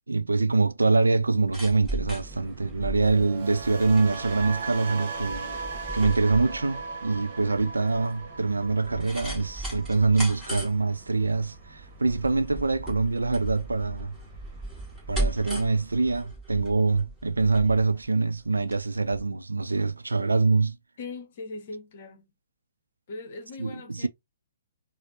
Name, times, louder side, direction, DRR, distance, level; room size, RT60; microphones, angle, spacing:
voice 1, 0.1-5.6 5.9-14.2 15.1-20.8 23.6-24.1, right 3 dB, 75° right, 0.3 m, -24 dB
sound 1, 1.2-18.8 19.1-19.2, right 1 dB, 5° right, 1.8 m, -37 dB
sound 2, 2.1-16.3, right 3 dB, 25° right, 1.5 m, -50 dB
sound 3, 2.9-11.1 11.3-11.7, right 4 dB, 45° right, 0.8 m, -38 dB
voice 2, 21.0-22.3 23.1-24.1, left 3 dB, 45° left, 0.9 m, -40 dB
4.1 x 2.1 x 2.8 m
figure-of-eight pair, 125°, 0 cm